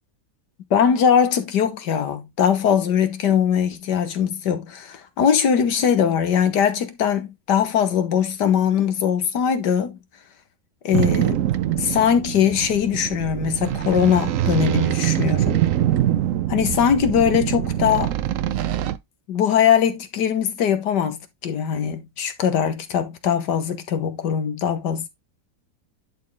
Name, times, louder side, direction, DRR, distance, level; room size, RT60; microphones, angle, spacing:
voice 1, 0.7-10.0 10.8-11.4 11.8-15.6 16.5-18.1 19.3-25.1, left 8 dB, 70° left, 1.7 m, -21 dB
sound 1, 10.9-19.0, right 12 dB, 65° right, 0.8 m, -23 dB
11.0 x 4.4 x 3.2 m
omnidirectional pair, 1.9 m